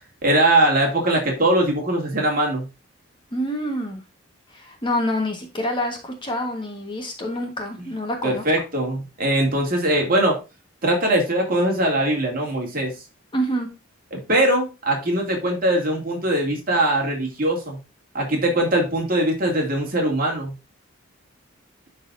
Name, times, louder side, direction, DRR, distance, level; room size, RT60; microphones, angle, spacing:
voice 1, 0.2-2.7 8.2-10.4 10.8-12.9 14.1-17.8 18.1-20.5, right 1 dB, 45° right, 0 dB, 2.4 m, -21 dB
voice 2, 3.3-4.0 4.5-8.4 13.3-13.7, equal, 25° left, 2 dB, 1.4 m, -27 dB
11.5 x 4.0 x 2.6 m, 0.28 s
head